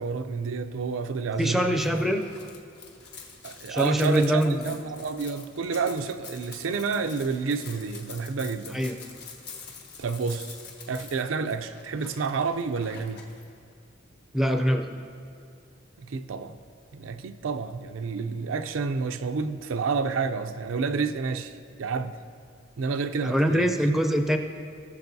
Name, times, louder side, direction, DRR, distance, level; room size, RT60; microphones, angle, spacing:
voice 1, 0.0-1.8 3.4-8.8 10.0-10.6 10.9-13.3 16.1-16.6 16.9-22.2 22.8-23.7, right 4 dB, 85° right, 0.5 m, -29 dB
voice 2, 1.4-2.2 3.7-4.7 8.7-9.0 14.3-14.9 23.2-24.4, equal, ahead, 0.5 m, -23 dB
sound 1, 1.7-13.4, left 5 dB, 55° left, 1.2 m, -46 dB
18.5 x 6.9 x 2.7 m
head